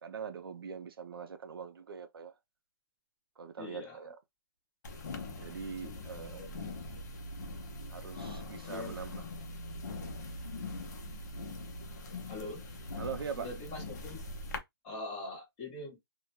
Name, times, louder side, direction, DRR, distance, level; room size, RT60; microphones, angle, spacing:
voice 1, 0.0-2.3 3.4-4.2 5.4-6.4 7.9-9.2 13.0-13.5, right 6 dB, 65° right, 0.4 m, -42 dB
voice 2, 3.6-4.0 6.4-6.5 8.7-8.9 12.3-12.7 13.3-14.2 14.8-16.0, left 2 dB, 15° left, 0.9 m, -42 dB
sound 1, 4.8-14.6, left 2 dB, 45° left, 0.5 m, -42 dB
2.2 x 2.1 x 2.9 m
hypercardioid pair, 175°, 13 cm